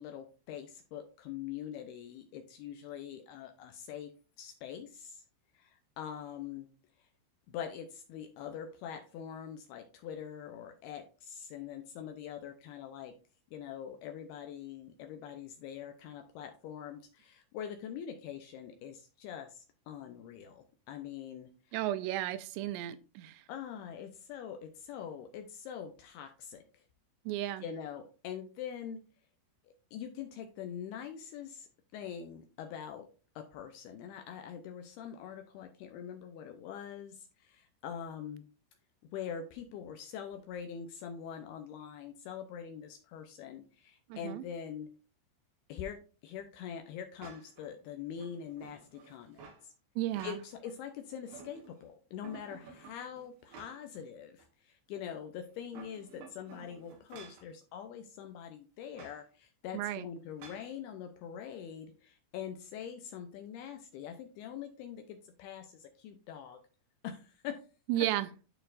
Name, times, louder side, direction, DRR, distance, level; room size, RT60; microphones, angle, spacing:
voice 1, 0.0-4.1 4.4-5.2 5.5-6.7 7.5-13.1 13.5-21.8 23.5-26.8 27.6-29.0 29.9-33.1 33.4-38.5 39.1-44.9 45.7-46.0 46.2-49.7 50.2-66.6 67.0-67.6, left 8 dB, 80° left, 5 dB, 2.4 m, -44 dB
voice 2, 21.7-23.4 27.3-27.6 44.1-44.4 50.0-50.4 59.7-60.1 67.9-68.3, right 14 dB, 85° right, 12 dB, 2.7 m, -34 dB
sound 1, 47.2-47.7 48.1-49.6 50.0-50.7 51.1-51.8 52.2-54.0 54.4-54.5 55.5-57.5 58.9-59.2 60.4-60.7, right 5 dB, 65° right, 3.0 m, -53 dB
12.0 x 4.5 x 2.5 m, 0.36 s
omnidirectional pair, 5.0 m